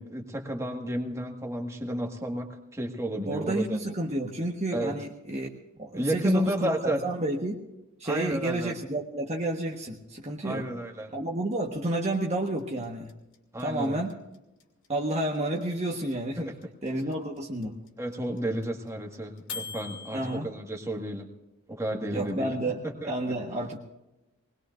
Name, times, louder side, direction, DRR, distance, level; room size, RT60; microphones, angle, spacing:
voice 1, 0.0-3.8 4.7-4.9 5.9-7.0 8.0-8.7 10.4-11.1 13.5-14.0 16.4-16.5 18.0-21.3 21.7-22.5 23.0-23.1, equal, 15° right, 2 dB, 1.7 m, -31 dB
voice 2, 3.3-5.5 5.8-7.6 8.0-10.7 11.1-13.1 13.6-14.1 14.9-16.5 16.8-17.8 20.1-20.5 22.1-23.8, right 1 dB, 30° right, 0 dB, 1.3 m, -30 dB
sound 1, 12.1-20.4, left 5 dB, 60° left, 2.6 m, -41 dB
21.5 x 20.0 x 2.6 m, 0.96 s
head